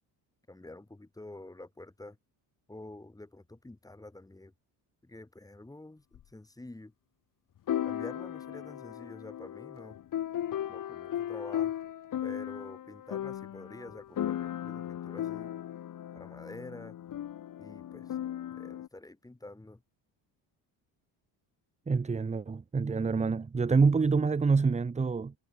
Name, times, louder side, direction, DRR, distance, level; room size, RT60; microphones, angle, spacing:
voice 1, 0.5-2.2 2.7-4.5 5.0-6.9 7.8-10.0 10.7-11.7 12.2-15.5 16.1-17.0 17.6-18.2 18.5-19.8, left 2 dB, 10° left, 5.0 m, -48 dB
sound 1, 6.1-6.2 7.7-18.9, left 11 dB, 50° left, 3.0 m, -36 dB
voice 2, 21.9-25.3, right 4 dB, 15° right, 1.1 m, -26 dB
cardioid pair, 135°, 41 cm